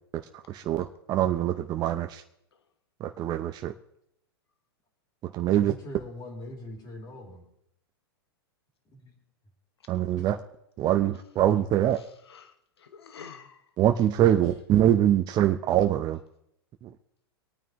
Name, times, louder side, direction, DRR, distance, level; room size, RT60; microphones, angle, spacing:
voice 1, 0.5-2.2 3.0-3.7 5.3-5.7 9.9-10.4 10.8-12.0 13.8-16.2 16.8-16.9, right 11 dB, 30° right, 6 dB, 0.7 m, -24 dB
voice 2, 5.4-7.4 8.9-9.1 10.1-10.3, left 1 dB, 30° left, 1 dB, 3.6 m, -42 dB
voice 3, 9.9-10.3 12.0-13.6, left 6 dB, 85° left, 8 dB, 1.0 m, -49 dB
24.5 x 9.1 x 3.1 m, 0.78 s
hypercardioid pair, 110°, 13 cm